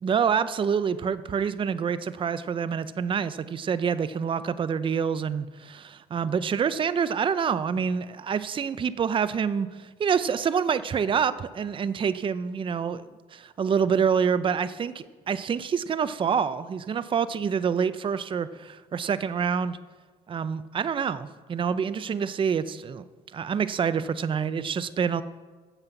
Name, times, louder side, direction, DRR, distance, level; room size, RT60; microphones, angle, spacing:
voice 1, 0.0-19.8 20.3-23.0 23.3-25.2, right 7 dB, 30° right, 14 dB, 0.5 m, -27 dB
9.8 x 7.5 x 8.0 m, 1.4 s
cardioid pair, 110°, 17 cm